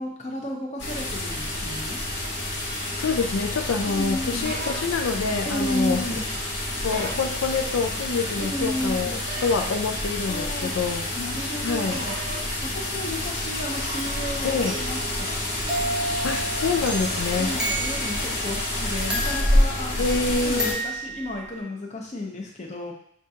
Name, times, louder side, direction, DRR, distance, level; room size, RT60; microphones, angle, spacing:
voice 1, 0.0-2.0 3.9-4.5 5.4-6.3 8.4-9.2 10.3-10.7 11.1-15.4 17.4-22.9, left 1 dB, 35° left, 0 dB, 0.6 m, -33 dB
sound 1, 0.8-20.7, left 1 dB, 65° left, 1.2 m, -28 dB
voice 2, 2.9-6.0 6.8-11.1 11.6-12.0 14.4-14.8 16.2-17.6 20.0-20.8, left 4 dB, 80° left, 3 dB, 0.4 m, -26 dB
sound 2, 4.4-4.9 6.9-7.3 9.3-9.7 11.9-12.4, right 2 dB, 50° right, 0.6 m, -35 dB
sound 3, 13.9-18.3 19.1-20.2 20.6-21.6, right 1 dB, 5° right, 0.7 m, -32 dB
6.4 x 2.4 x 2.7 m, 0.65 s
head